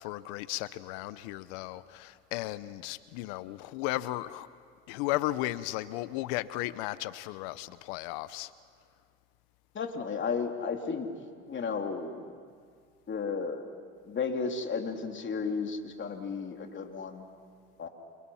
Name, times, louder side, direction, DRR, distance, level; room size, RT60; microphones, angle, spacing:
voice 1, 0.0-4.5 4.9-8.5, left 17 dB, 80° left, 0.8 m, -35 dB
voice 2, 9.8-11.1 11.5-12.3 13.1-13.6 14.1-17.3 17.8-17.9, left 5 dB, 40° left, 3.3 m, -33 dB
30.0 x 27.5 x 5.7 m
supercardioid pair, 80°, 30 cm